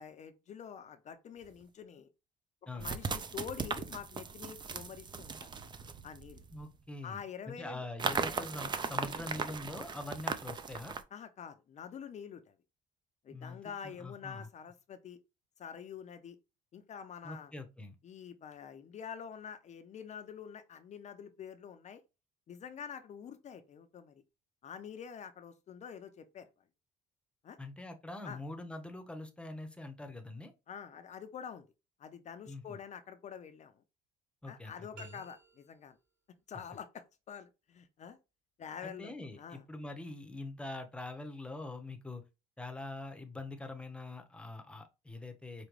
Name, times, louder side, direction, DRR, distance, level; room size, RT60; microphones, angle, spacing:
voice 1, 0.0-2.1 2.7-5.5 6.0-6.4 7.0-7.9 11.1-12.5 13.2-15.2 15.6-16.4 16.7-17.5 18.0-22.0 22.5-24.2 24.6-26.5 27.4-27.6 28.2-28.4 30.7-31.7 32.0-33.8 34.5-36.0 36.5-38.2 38.6-39.1 39.4-39.6, left 7 dB, 45° left, 0.5 m, -47 dB
sound 1, 1.4-1.5 2.8-6.7 8.0-11.0, right 5 dB, 25° right, 0.4 m, -38 dB
voice 2, 6.5-11.0 13.3-14.5 17.2-18.0 27.6-30.5 32.5-32.6 34.4-35.2 38.8-42.2 42.6-45.7, left 2 dB, 5° left, 0.8 m, -44 dB
sound 2, 34.9-36.1, right 4 dB, 55° right, 2.5 m, -55 dB
5.0 x 2.2 x 3.1 m
cardioid pair, 110°, 17 cm